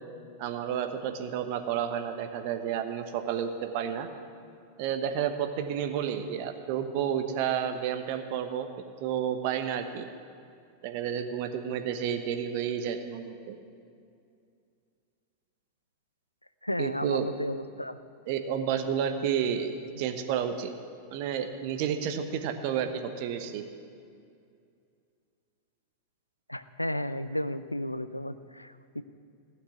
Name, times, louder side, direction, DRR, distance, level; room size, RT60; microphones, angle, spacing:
voice 1, 0.4-4.1 4.8-8.7 9.0-10.1 10.8-13.6 16.8-17.2 18.3-20.7 21.1-23.6, right 8 dB, 45° right, 7 dB, 1.1 m, -31 dB
voice 2, 16.6-18.0 26.5-29.0, left 1 dB, 85° left, 13 dB, 0.4 m, -33 dB
15.5 x 6.6 x 9.5 m, 2.4 s
figure-of-eight pair, 90°, 0 cm